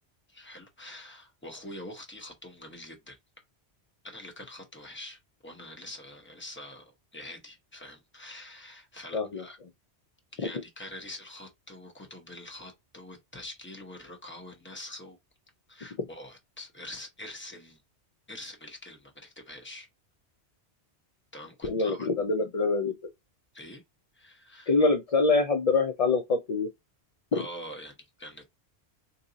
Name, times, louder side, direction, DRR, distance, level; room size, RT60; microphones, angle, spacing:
voice 1, 0.3-3.2 4.0-9.6 10.3-15.2 15.7-17.8 18.3-19.9 21.3-22.1 23.5-23.8 24.1-24.7 27.3-28.5, left 1 dB, 10° left, 0.8 m, -45 dB
voice 2, 9.1-9.4 21.6-22.9 24.7-26.7 27.3-27.4, left 3 dB, 50° left, 0.4 m, -25 dB
2.7 x 2.4 x 3.8 m
omnidirectional pair, 1.1 m